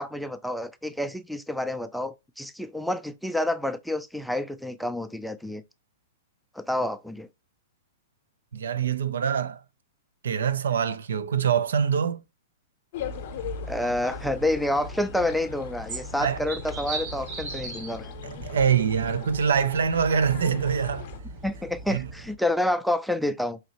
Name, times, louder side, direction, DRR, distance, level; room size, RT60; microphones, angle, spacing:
voice 1, 0.0-5.6 6.6-7.3 13.7-18.1 21.4-23.6, left 1 dB, ahead, 0.3 m, -28 dB
voice 2, 8.5-9.6 10.2-12.2 13.8-13.9 16.2-16.4 18.2-21.1 21.9-22.1, right 7 dB, 80° right, 0.5 m, -24 dB
sound 1, 12.9-21.2, left 11 dB, 55° left, 0.6 m, -40 dB
sound 2, 13.0-22.3, right 3 dB, 45° right, 1.6 m, -39 dB
5.0 x 2.8 x 2.8 m
hypercardioid pair, 135°, 0 cm